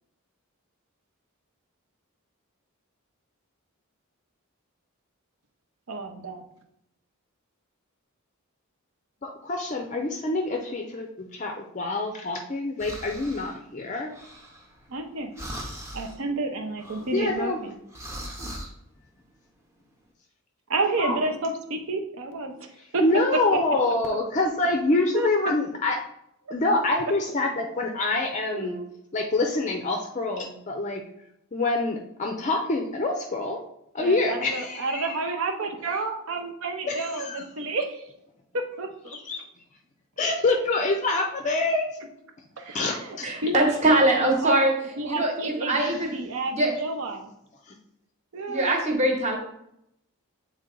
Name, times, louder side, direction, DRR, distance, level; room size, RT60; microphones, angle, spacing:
voice 1, 5.9-6.4 14.9-15.4 15.9-17.7 20.7-23.0 23.3-23.4 25.1-25.3 26.5-26.6 28.5-28.9 34.0-38.0 38.5-39.2 42.6-44.5 45.0-47.3 48.3-48.7, right 3 dB, 70° right, 4 dB, 0.8 m, -31 dB
voice 2, 9.2-14.1 17.1-17.6 21.0-21.2 23.0-26.0 26.5-28.8 29.1-31.0 31.5-33.6 33.9-35.2 36.9-37.4 39.1-39.4 40.2-41.9 42.7-43.3 45.8-46.0 47.7-47.8, left 2 dB, 35° left, 3 dB, 0.4 m, -26 dB
sound 1, 12.8-13.6 14.1-15.1 15.3-16.2 16.8-18.7, equal, 10° right, 0.7 m, -40 dB
voice 3, 43.2-46.1 46.5-46.7 48.5-49.4, right 1 dB, 30° right, 1 dB, 1.1 m, -22 dB
7.7 x 3.2 x 3.8 m, 0.79 s
head